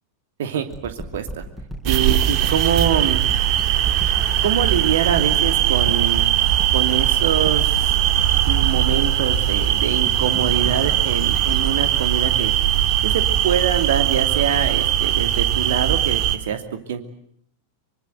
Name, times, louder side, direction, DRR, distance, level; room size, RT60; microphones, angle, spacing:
voice 1, 0.4-1.4 1.8-3.2 4.4-6.3 6.7-7.9 8.5-12.5 13.0-17.0, right 9 dB, 60° right, 8 dB, 2.7 m, -24 dB
sound 1, 0.7-13.3, right 1 dB, ahead, 4.3 m, -35 dB
sound 2, 1.9-16.4, right 11 dB, 40° right, 1.8 m, -20 dB
24.5 x 24.5 x 8.0 m, 0.66 s
figure-of-eight pair, 90°, 0 cm